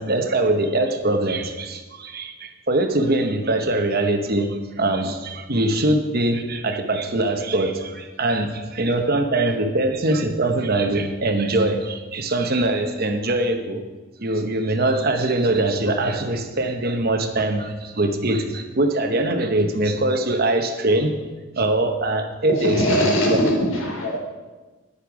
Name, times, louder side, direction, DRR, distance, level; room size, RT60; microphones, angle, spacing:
voice 1, 0.0-13.8 14.2-21.2 21.5-23.4, right 2 dB, 45° right, 6 dB, 1.0 m, -22 dB
voice 2, 22.6-24.2, equal, 70° left, 0 dB, 3.3 m, -21 dB
11.0 x 10.0 x 5.0 m, 1.2 s
head